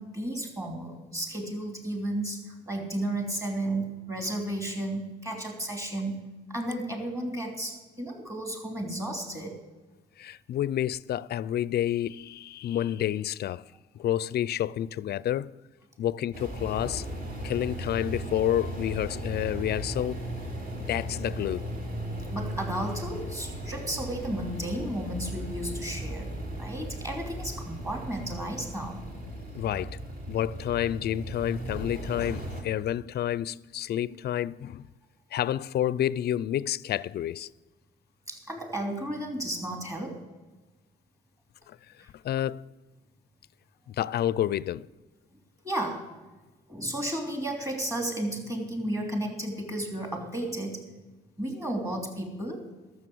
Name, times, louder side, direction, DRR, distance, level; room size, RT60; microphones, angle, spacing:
voice 1, 0.0-6.2 6.5-9.5 22.3-29.0 38.3-40.2 42.0-42.1 45.6-46.1 46.7-50.8 51.4-52.6, right 1 dB, 15° right, 3.0 m, -33 dB
voice 2, 10.2-13.6 13.9-15.5 16.0-17.1 17.4-20.2 20.8-21.6 29.5-30.0 30.3-34.9 35.3-37.5 41.7-41.8 42.2-42.6 43.9-44.9, left 11 dB, 55° left, 0.4 m, -29 dB
sound 1, 16.3-32.6, right 1 dB, 45° right, 3.0 m, -37 dB
12.5 x 7.2 x 7.7 m
cardioid pair, 90°, 20 cm